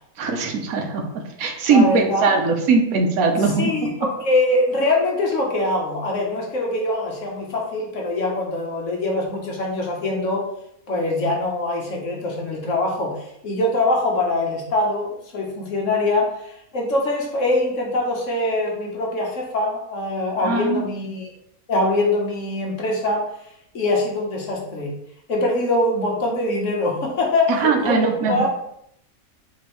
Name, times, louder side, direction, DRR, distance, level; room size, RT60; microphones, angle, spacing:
voice 1, 0.2-1.0 1.4-3.7 20.4-20.9 27.5-28.5, right 4 dB, 80° right, 3 dB, 1.2 m, -20 dB
voice 2, 1.7-2.2 3.6-10.4 10.9-13.1 13.4-21.3 21.7-23.2 23.7-24.9 25.3-28.5, left 2 dB, 60° left, -1 dB, 1.2 m, -23 dB
5.0 x 3.5 x 3.0 m, 0.74 s
omnidirectional pair, 1.5 m